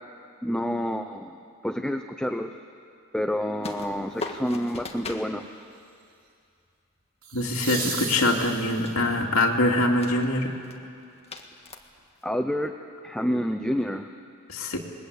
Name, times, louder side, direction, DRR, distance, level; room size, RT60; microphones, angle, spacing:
voice 1, 0.4-1.3 1.6-2.5 3.1-5.5 12.2-12.7 13.0-14.1, equal, 5° left, 6 dB, 0.7 m, -28 dB
sound 1, 3.6-5.3 7.7-8.6 8.8-9.1 9.8-10.3 10.6-10.8 11.2-12.2, left 2 dB, 30° left, 1.7 m, -39 dB
sound 2, 4.2-4.5 7.2-9.1 12.0-12.1, right 5 dB, 75° right, 3.1 m, -35 dB
voice 2, 7.3-10.5 14.5-14.8, left 1 dB, 70° left, 0 dB, 2.8 m, -24 dB
29.5 x 21.0 x 8.4 m, 2.5 s
head